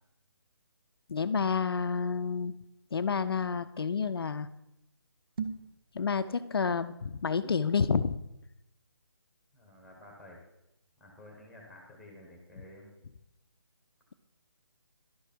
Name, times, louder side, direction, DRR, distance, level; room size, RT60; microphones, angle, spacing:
voice 1, 1.1-2.6 2.9-4.5 5.9-8.1, left 5 dB, 60° left, 13 dB, 0.5 m, -29 dB
sound 1, 5.3-5.8, right 6 dB, 55° right, 0.8 m, -36 dB
voice 2, 9.5-10.4 11.0-12.9, left 1 dB, ahead, 0 dB, 1.5 m, -52 dB
11.5 x 4.9 x 4.5 m, 0.87 s
figure-of-eight pair, 155°, 14 cm